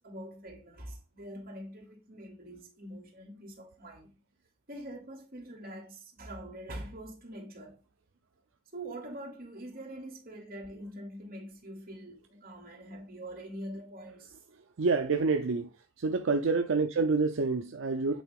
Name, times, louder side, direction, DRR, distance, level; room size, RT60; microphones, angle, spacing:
voice 1, 0.0-4.2 4.7-7.8 8.7-14.4 17.0-17.2, right 1 dB, 45° right, 2.5 m, -44 dB
voice 2, 14.8-15.7 16.0-18.2, right 4 dB, 75° right, 0.5 m, -27 dB
8.3 x 3.6 x 3.6 m
head